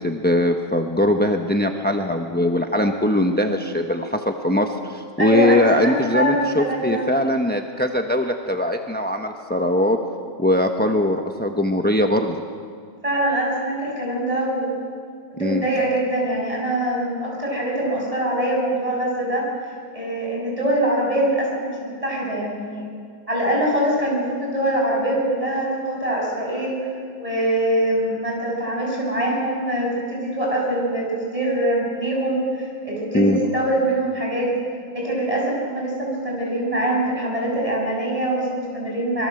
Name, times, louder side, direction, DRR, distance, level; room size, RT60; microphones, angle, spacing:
voice 1, 0.0-10.0 10.4-12.4 15.4-15.7 33.1-33.4, left 1 dB, 10° left, 4 dB, 0.6 m, -21 dB
voice 2, 5.2-7.1 13.0-14.8 15.3-19.5 19.9-22.9 23.3-26.9 27.2-34.5 34.9-39.3, right 1 dB, 15° right, -3 dB, 7.7 m, -23 dB
26.5 x 23.0 x 7.9 m, 2.1 s
omnidirectional pair, 2.1 m